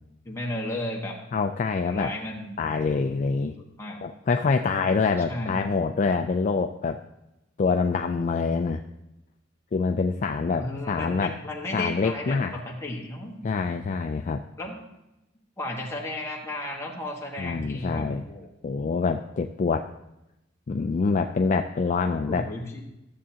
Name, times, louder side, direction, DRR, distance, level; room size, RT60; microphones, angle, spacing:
voice 1, 0.2-1.2 1.8-2.6 3.8-4.0 5.3-5.7 10.6-13.4 14.6-14.7 15.6-18.5 22.3-22.8, left 1 dB, 15° left, -2 dB, 1.4 m, -34 dB
voice 2, 1.3-2.1 2.6-3.6 4.0-7.0 7.6-8.8 9.7-11.4 11.7-12.5 13.4-14.4 17.4-18.2 18.6-19.9 20.7-22.5, left 4 dB, 40° left, 6 dB, 0.3 m, -25 dB
13.5 x 7.4 x 2.8 m, 0.92 s
head